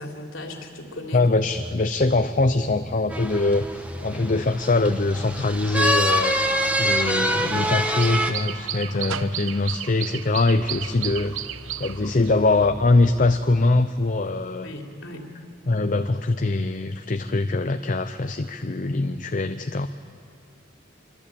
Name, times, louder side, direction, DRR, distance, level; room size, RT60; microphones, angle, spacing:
voice 1, 0.0-1.3 4.1-4.3 14.6-15.3, left 1 dB, 80° left, 1 dB, 3.3 m, -37 dB
voice 2, 1.1-6.4 6.8-11.4 11.8-14.7 15.7-19.9, left 2 dB, 40° left, 8 dB, 0.6 m, -23 dB
sound 1, 1.5-13.5, equal, 55° right, 6.6 m, -41 dB
sound 2, 3.1-8.3, equal, 5° right, 1.3 m, -25 dB
sound 3, 6.9-12.7, right 10 dB, 80° right, 0.8 m, -34 dB
25.0 x 24.5 x 8.6 m, 2.6 s
head